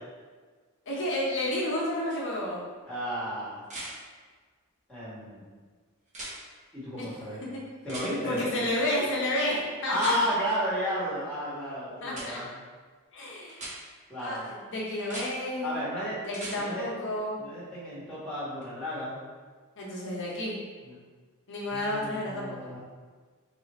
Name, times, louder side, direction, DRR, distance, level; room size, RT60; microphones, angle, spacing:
voice 1, 0.9-2.6 7.0-7.1 7.5-7.6 8.2-10.1 12.0-12.4 13.1-13.6 14.2-15.8 16.3-17.4 19.8-20.6 21.5-22.7, left 1 dB, 55° left, -4 dB, 0.9 m, -31 dB
sound 1, 2.1-2.2 3.6-3.9 6.1-6.3 7.9-8.1 10.0-10.2 12.1-12.3 13.5-13.7 15.0-15.3 16.2-16.6 18.6-18.7, right 1 dB, 35° right, 0.9 m, -39 dB
voice 2, 2.9-3.6 4.9-5.4 6.7-7.4 7.8-8.4 9.9-12.5 14.1-14.5 15.6-16.2 16.6-16.9 17.4-19.2 20.8-21.0 21.7-22.8, equal, 5° left, -10 dB, 1.3 m, -32 dB
3.5 x 2.5 x 4.1 m, 1.5 s
head